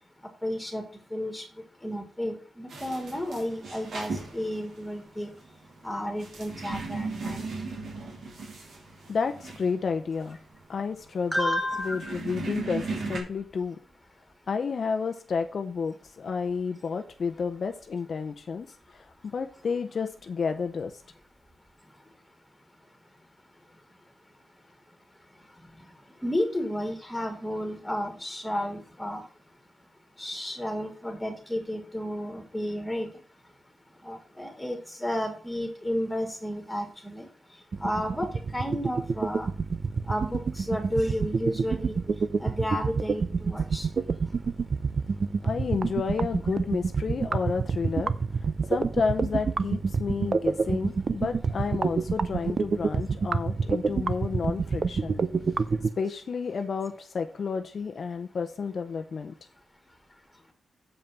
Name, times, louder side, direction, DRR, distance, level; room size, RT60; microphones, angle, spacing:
voice 1, 0.4-0.8 1.1-1.4 1.8-5.3 5.8-7.4 11.3-12.2 26.2-29.2 30.2-33.1 34.0-37.3 37.8-38.3 38.5-39.5 40.1-42.0 42.4-43.9, left 1 dB, 5° left, 4 dB, 2.7 m, -32 dB
sound 1, 2.7-13.2, right 3 dB, 75° right, 2.8 m, -37 dB
voice 2, 9.1-10.4 10.7-11.5 11.8-13.8 14.5-18.7 18.9-19.1 19.3-20.9 45.4-48.1 48.4-55.2 56.0-59.3, left 5 dB, 55° left, 6 dB, 0.7 m, -31 dB
sound 2, 37.7-55.9, right 5 dB, 50° right, 0.5 m, -27 dB
7.3 x 5.3 x 5.9 m, 0.42 s
cardioid pair, 95°, 0 cm